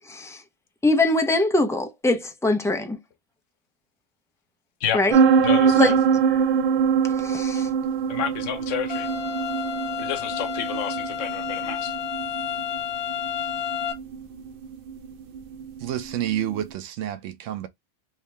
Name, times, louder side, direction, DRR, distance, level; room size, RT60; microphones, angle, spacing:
voice 1, 0.1-0.4 0.8-3.0 4.9-5.2 5.8-5.9 7.1-7.7, left 2 dB, 5° left, 0.4 m, -22 dB
sound 1, 5.1-16.6, right 6 dB, 55° right, 0.7 m, -24 dB
voice 2, 5.4-6.0 8.1-9.1 10.0-11.9, left 8 dB, 80° left, 1.1 m, -29 dB
sound 2, 8.9-13.9, left 9 dB, 50° left, 1.3 m, -30 dB
voice 3, 15.8-17.7, right 11 dB, 90° right, 1.0 m, -29 dB
3.6 x 2.7 x 3.3 m
omnidirectional pair, 1.3 m